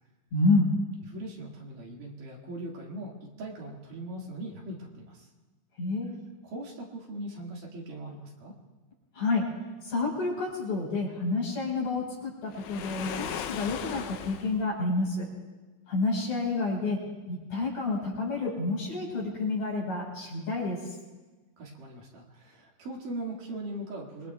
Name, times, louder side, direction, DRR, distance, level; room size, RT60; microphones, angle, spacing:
voice 1, 0.3-0.7 5.8-6.1 9.1-9.5 9.8-15.3 15.9-17.0 17.3-20.8, left 3 dB, 50° left, -3 dB, 5.7 m, -29 dB
voice 2, 1.0-5.3 6.4-8.5 21.6-24.3, right 1 dB, 70° right, -2 dB, 3.6 m, -40 dB
Waves surf, 12.5-14.6, left 9 dB, 75° left, 1.9 m, -37 dB
26.0 x 22.5 x 2.3 m, 1.2 s
omnidirectional pair, 4.1 m